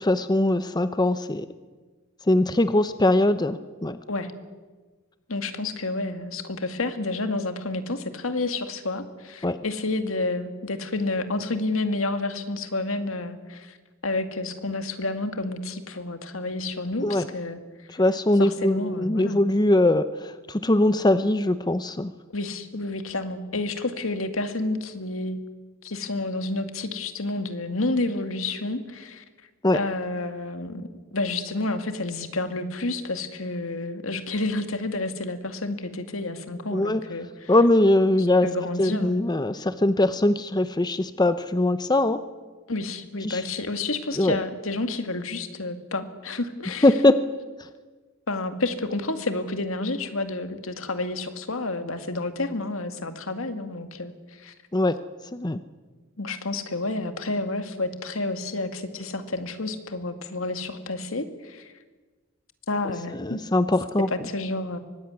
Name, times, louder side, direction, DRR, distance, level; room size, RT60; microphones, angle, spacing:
voice 1, 0.0-1.5 2.3-4.0 9.4-9.6 17.0-17.3 17.9-22.1 29.6-29.8 36.7-37.0 37.5-38.5 38.8-42.2 43.2-43.4 44.2-44.4 46.8-47.3 54.7-54.9 55.3-55.6 63.1-64.1, left 1 dB, 20° left, 12 dB, 0.7 m, -21 dB
voice 2, 5.3-13.8 14.0-17.6 17.9-18.0 18.4-19.4 22.3-25.4 25.8-29.2 29.7-37.5 38.4-39.2 42.7-46.9 48.3-54.5 56.2-61.7 62.7-63.4 64.1-64.8, left 2 dB, 75° left, 8 dB, 2.2 m, -30 dB
24.0 x 19.5 x 9.7 m, 1.4 s
head